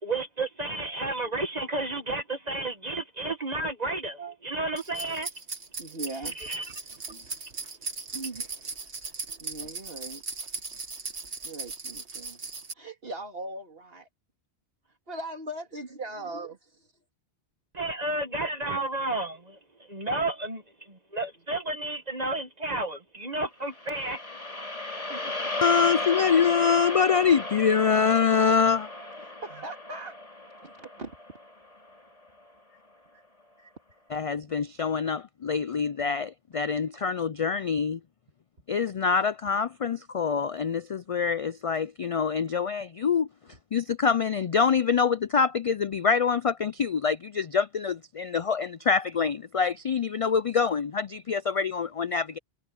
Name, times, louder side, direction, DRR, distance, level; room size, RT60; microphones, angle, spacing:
voice 1, 0.0-5.3 6.5-6.6 17.7-20.6 20.9-24.2, right 2 dB, 40° right, 1.6 m, -31 dB
sound 1, 4.8-12.7, right 4 dB, 80° right, 2.2 m, -38 dB
voice 2, 5.8-6.9 8.1-8.5 9.4-10.2 11.4-14.1 14.9-16.9 25.1-25.3 29.2-30.2 30.6-31.1 32.7-32.8 33.1-33.2 33.6-33.7, right 2 dB, 60° right, 2.9 m, -40 dB
sound 2, 23.7-32.0, left 2 dB, 35° left, 3.7 m, -35 dB
voice 3, 25.6-28.9 34.1-38.0 38.7-43.3 43.7-52.4, left 6 dB, 60° left, 0.3 m, -25 dB
omnidirectional pair, 1.1 m